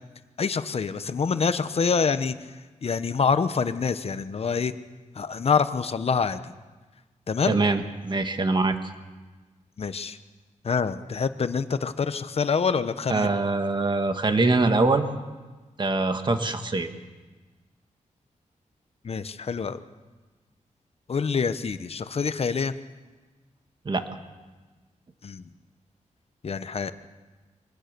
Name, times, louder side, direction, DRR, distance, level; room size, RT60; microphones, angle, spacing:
voice 1, 0.4-2.3 2.8-4.7 5.1-6.5 7.3-7.6 9.8-10.2 10.6-13.3 19.0-19.8 21.1-22.7 25.2-25.4 26.4-26.9, left 5 dB, 50° left, 12 dB, 1.0 m, -26 dB
voice 2, 7.5-8.8 13.1-15.1 15.8-16.9 23.8-24.0, right 3 dB, 35° right, 7 dB, 1.6 m, -23 dB
24.5 x 18.5 x 6.9 m, 1.3 s
wide cardioid pair, 120°, 13 cm